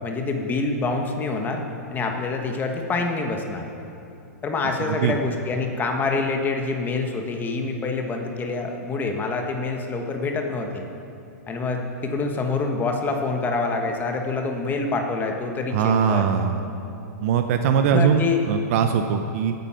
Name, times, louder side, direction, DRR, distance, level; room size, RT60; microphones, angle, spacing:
voice 1, 0.0-1.6 1.9-3.6 4.4-10.9 11.5-16.3 17.9-18.4, left 3 dB, 20° left, 3 dB, 1.3 m, -26 dB
voice 2, 4.8-5.1 15.7-16.7 17.2-19.5, right 7 dB, 55° right, 6 dB, 0.8 m, -21 dB
16.5 x 9.4 x 5.7 m, 2.7 s
hypercardioid pair, 125°, 9 cm